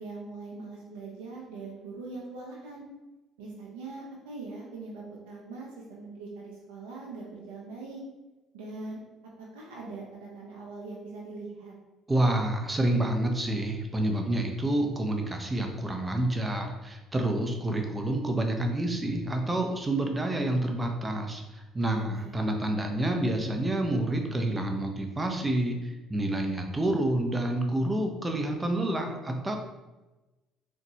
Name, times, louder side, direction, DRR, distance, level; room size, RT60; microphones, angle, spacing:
voice 1, 0.0-2.8 3.4-8.0 8.5-9.0 9.5-11.7 21.9-22.4, right 3 dB, 85° right, -3 dB, 0.5 m, -42 dB
voice 2, 12.1-29.5, right 1 dB, 20° right, 3 dB, 0.6 m, -28 dB
3.9 x 2.2 x 2.8 m, 1.1 s
hypercardioid pair, 65°, 0 cm